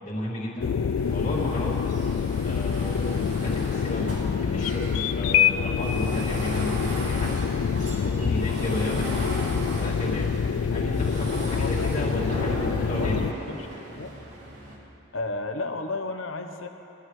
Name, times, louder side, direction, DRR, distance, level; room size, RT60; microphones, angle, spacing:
voice 1, 0.0-0.7 1.1-2.0 2.4-7.3 7.9-9.3 9.7-10.3 10.7-13.2, left 1 dB, 35° left, -6 dB, 2.3 m, -33 dB
sound 1, 0.6-13.3, left 6 dB, 85° left, 0.4 m, -26 dB
sound 2, 1.0-14.8, right 1 dB, 60° right, 3.2 m, -38 dB
voice 2, 11.5-12.0 12.4-14.1 15.1-16.7, left 2 dB, 70° left, 5 dB, 1.0 m, -34 dB
22.0 x 13.5 x 3.3 m, 2.8 s
head